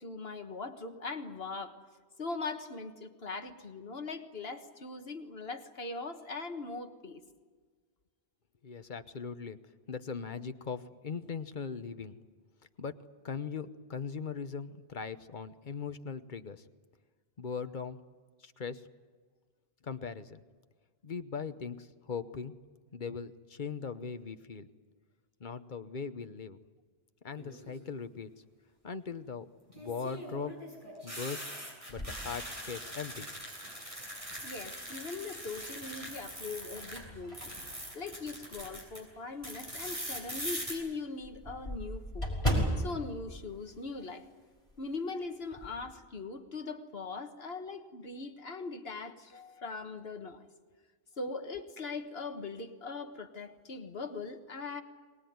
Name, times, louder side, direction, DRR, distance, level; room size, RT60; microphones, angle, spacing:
voice 1, 0.0-1.8 2.2-7.2 34.4-37.5 37.9-42.3 42.8-44.3 44.8-50.5 51.2-54.8, left 3 dB, 65° left, 7 dB, 1.7 m, -40 dB
voice 2, 8.6-9.6 9.9-12.2 12.8-12.9 13.2-16.6 17.4-18.0 18.4-18.8 19.8-20.4 21.0-22.5 22.9-24.7 25.4-26.6 27.2-28.3 28.8-29.5 29.7-30.5 31.0-31.5 31.9-33.3, left 5 dB, 50° left, 11 dB, 1.1 m, -39 dB
sound 1, 27.4-27.9 29.7-37.0 37.3-39.0 39.4-40.7, equal, 30° right, 6.8 m, -42 dB
sound 2, 31.9-33.2 33.8-33.9 35.3-35.8 36.3-39.0 39.4-39.5 39.9-40.0 40.3-40.4 40.6-44.4 44.7-44.9 45.2-45.8, equal, 30° left, 5.9 m, -37 dB
23.0 x 20.0 x 9.4 m, 1.5 s
omnidirectional pair, 1.1 m